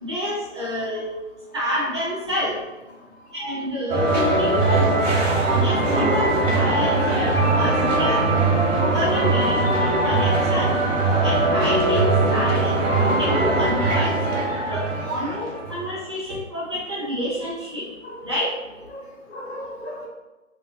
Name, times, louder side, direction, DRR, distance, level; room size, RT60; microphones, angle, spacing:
voice 1, 0.0-1.1 1.5-2.6 3.3-4.8 5.4-8.2 8.8-10.7 11.2-14.1 14.7-17.9 18.2-18.5, left 1 dB, 25° right, -8 dB, 0.4 m, -28 dB
voice 2, 3.0-3.4 13.9-14.2 14.5-14.6 15.0-15.4 18.0-18.3 18.9-20.1, left 1 dB, 55° left, -1 dB, 0.8 m, -39 dB
sound 1, 3.9-15.9, right 2 dB, 55° right, 0.9 m, -20 dB
2.5 x 2.4 x 2.7 m, 1.1 s
figure-of-eight pair, 130°, 37 cm